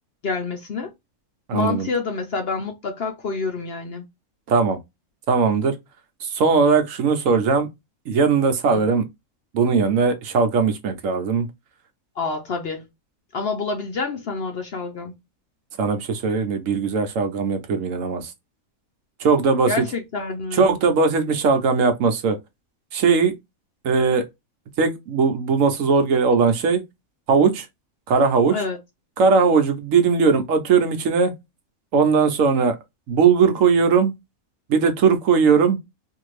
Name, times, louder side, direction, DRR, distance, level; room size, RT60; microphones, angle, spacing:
voice 1, 0.2-0.9 1.5-4.0 8.7-8.8 12.2-12.8 13.3-15.1 19.7-20.8 28.5-28.8, left 4 dB, 55° left, 0.7 m, -27 dB
voice 2, 1.5-1.9 4.5-4.8 5.3-5.8 6.2-7.7 8.1-9.0 9.5-11.5 15.8-18.3 19.2-19.9 20.5-22.4 22.9-23.3 23.8-24.2 24.8-26.8 27.3-27.7 28.1-28.6 29.2-31.3 31.9-32.7 33.1-34.1 34.7-35.8, right 5 dB, 70° right, 1.0 m, -19 dB
2.7 x 2.6 x 3.1 m
omnidirectional pair, 1.5 m